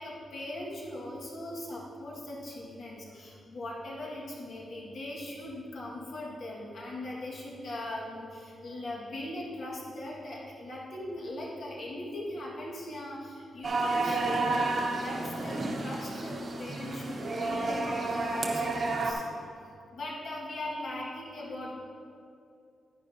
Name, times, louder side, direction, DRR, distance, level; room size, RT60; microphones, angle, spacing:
voice 1, 0.0-19.2 19.9-21.7, left 1 dB, 50° left, -4 dB, 1.7 m, -40 dB
sound 1, 13.6-19.1, right 3 dB, 40° right, 0.9 m, -31 dB
10.0 x 9.9 x 2.8 m, 2.5 s
wide cardioid pair, 160°, 0 cm